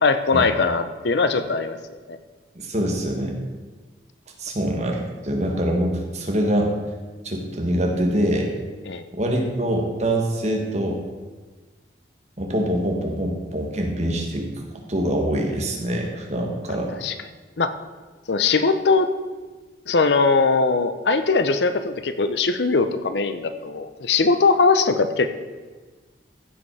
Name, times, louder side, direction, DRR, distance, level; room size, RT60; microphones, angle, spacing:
voice 1, 0.0-1.8 2.1-2.2 8.9-9.0 17.0-17.1 17.6-17.7 18.3-19.1 19.9-25.3, left 4 dB, 70° left, 10 dB, 0.7 m, -20 dB
voice 2, 2.6-3.4 4.4-6.7 7.2-8.5 9.1-11.0 12.4-14.5 14.9-16.9, right 1 dB, 35° right, 1 dB, 1.6 m, -24 dB
15.0 x 5.4 x 4.8 m, 1.3 s
head